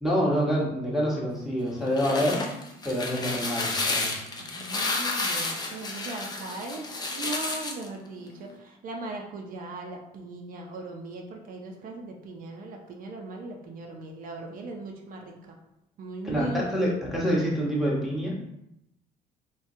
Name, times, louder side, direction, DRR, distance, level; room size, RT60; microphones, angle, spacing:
voice 1, 0.0-2.4 2.8-4.2 16.2-18.3, equal, ahead, -5 dB, 0.9 m, -26 dB
sound 1, 1.7-7.9, left 3 dB, 25° left, 0.5 m, -31 dB
voice 2, 4.4-15.6 16.0-16.9, right 2 dB, 55° right, 1 dB, 0.5 m, -38 dB
3.6 x 2.2 x 2.6 m, 0.82 s
cardioid pair, 110°, 17 cm